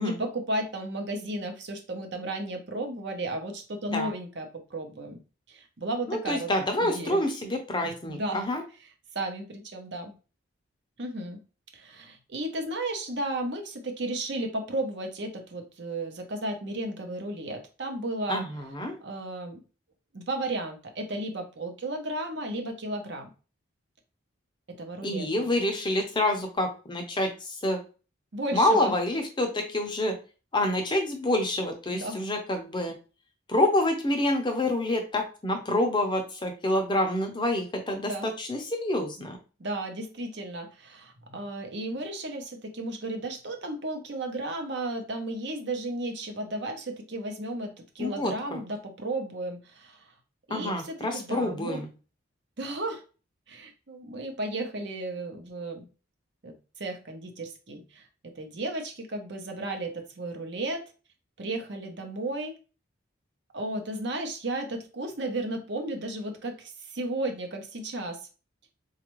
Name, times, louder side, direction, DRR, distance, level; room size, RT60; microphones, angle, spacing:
voice 1, 0.0-5.2 5.5-6.5 6.8-7.2 8.1-8.4 9.1-10.1 11.0-11.4 11.7-18.4 19.0-19.6 20.1-23.3 24.7-25.3 28.3-28.9 31.9-32.2 38.0-38.3 39.6-50.1 50.5-51.8 52.6-53.0 53.5-55.9 56.4-60.8 61.4-62.6 63.5-68.3, right 1 dB, 55° right, 4 dB, 0.7 m, -34 dB
voice 2, 6.1-8.6 18.3-19.0 25.0-27.8 28.5-30.2 30.5-32.9 33.5-39.4 48.0-48.6 50.5-51.9, left 1 dB, 25° left, 4 dB, 0.6 m, -27 dB
4.2 x 2.4 x 3.0 m, 0.34 s
head